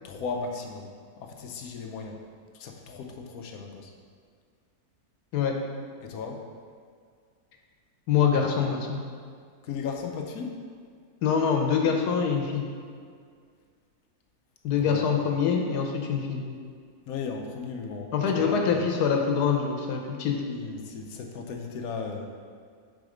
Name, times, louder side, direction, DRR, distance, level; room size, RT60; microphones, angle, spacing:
voice 1, 0.0-0.9 1.2-2.2 2.5-3.9 6.0-6.4 9.6-10.5 14.7-15.1 17.1-18.6 20.5-22.3, left 5 dB, 70° left, 2 dB, 1.1 m, -36 dB
voice 2, 8.1-9.0 11.2-12.6 14.6-16.4 18.1-20.4, left 6 dB, 90° left, 2 dB, 1.3 m, -24 dB
5.1 x 4.2 x 4.9 m, 2.1 s
omnidirectional pair, 1.7 m